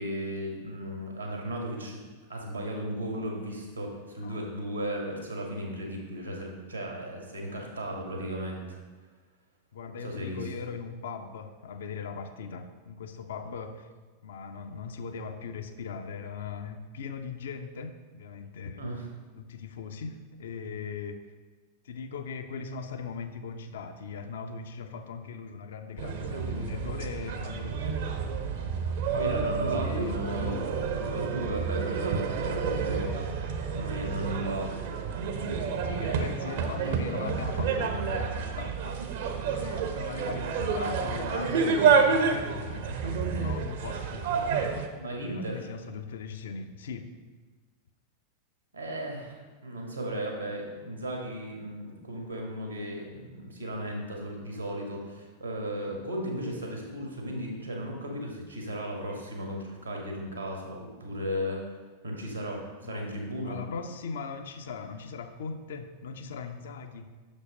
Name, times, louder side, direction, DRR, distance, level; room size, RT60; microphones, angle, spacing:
voice 1, 0.0-2.0 2.3-8.8 10.0-10.4 18.8-19.1 29.1-30.5 30.9-33.2 33.8-34.8 45.0-45.7 48.7-61.6 62.0-63.6, equal, 85° right, 0 dB, 1.5 m, -35 dB
voice 2, 9.7-13.9 14.2-18.9 19.3-21.3 21.8-28.0 29.6-30.2 35.8-39.0 39.5-44.6 45.1-47.1 62.8-63.1 63.4-67.1, left 5 dB, 60° left, 8 dB, 0.5 m, -39 dB
sound 1, 26.0-44.9, right 5 dB, 55° right, 0.7 m, -29 dB
6.3 x 5.3 x 5.0 m, 1.4 s
figure-of-eight pair, 90°, 0 cm